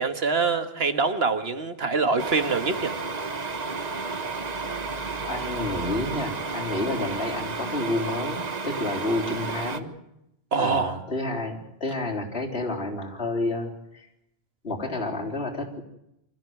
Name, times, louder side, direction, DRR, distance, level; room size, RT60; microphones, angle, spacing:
voice 1, 0.0-2.9 10.5-11.0, right 4 dB, 70° right, 1.8 m, -24 dB
sound 1, 2.2-9.8, right 4 dB, 40° right, 1.3 m, -32 dB
voice 2, 5.2-9.9 10.6-14.1 14.6-15.8, left 2 dB, 80° left, 3.9 m, -30 dB
25.0 x 14.0 x 9.3 m
omnidirectional pair, 1.1 m